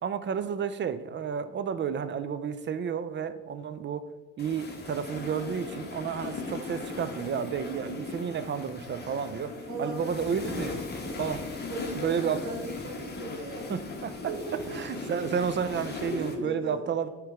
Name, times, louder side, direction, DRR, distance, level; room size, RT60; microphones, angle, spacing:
voice 1, 0.0-4.0 4.4-9.5 9.8-10.8 11.2-11.4 12.0-12.4 13.7-17.1, right 7 dB, 40° right, 12 dB, 0.4 m, -31 dB
sound 1, 4.4-16.3, left 3 dB, 35° left, 1.1 m, -38 dB
voice 2, 9.7-11.2 11.7-13.7 14.3-15.3 16.0-16.8, right 1 dB, 75° right, 2 dB, 1.4 m, -37 dB
6.3 x 3.2 x 4.9 m, 1.2 s
cardioid pair, 90°, 30 cm